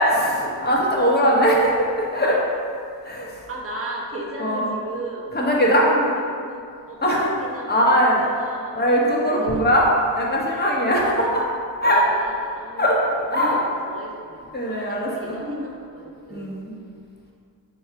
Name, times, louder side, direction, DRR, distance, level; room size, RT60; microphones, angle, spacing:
voice 1, 0.0-2.4 3.0-3.3 4.4-4.6 5.3-5.9 7.0-7.3 7.7-8.3 8.8-9.8 10.2-11.4 11.8-12.0 12.8-13.0 13.3-13.6 14.5-15.3 16.3-16.7, equal, 20° left, -3 dB, 1.0 m, -20 dB
voice 2, 3.5-5.3 5.6-8.8 9.2-9.9 10.8-11.3 11.9-12.8 13.2-16.5, right 1 dB, 30° right, -3 dB, 1.0 m, -35 dB
4.6 x 2.3 x 4.6 m, 2.3 s
cardioid pair, 75°, 43 cm